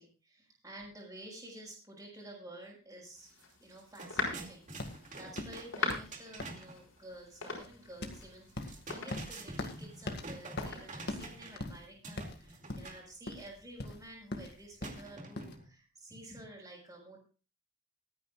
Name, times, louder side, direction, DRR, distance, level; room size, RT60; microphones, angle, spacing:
voice 1, 0.0-17.2, right 1 dB, 15° right, -4 dB, 5.9 m, -51 dB
sound 1, 3.1-11.6, left 3 dB, 80° left, 5.6 m, -42 dB
sound 2, 3.3-3.4 3.7-6.8 8.5-11.7 12.0-13.1 14.8-15.7, right 2 dB, 40° right, 2.4 m, -47 dB
sound 3, 4.2-15.6, left 1 dB, 55° left, 2.0 m, -43 dB
24.5 x 9.5 x 2.4 m, 0.34 s
head